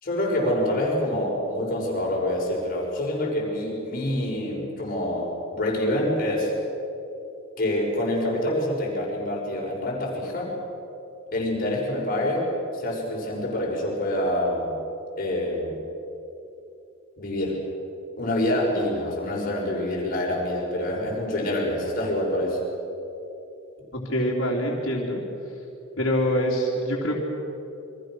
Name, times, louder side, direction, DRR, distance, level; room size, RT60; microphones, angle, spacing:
voice 1, 0.0-6.5 7.6-10.5 11.3-12.5 12.7-14.7 15.2-15.7 17.2-17.6 18.2-22.6, left 1 dB, 45° left, -2 dB, 6.1 m, -26 dB
voice 2, 24.0-25.5 26.0-27.2, equal, 65° left, -4 dB, 3.4 m, -25 dB
29.0 x 24.0 x 6.4 m, 2.9 s
head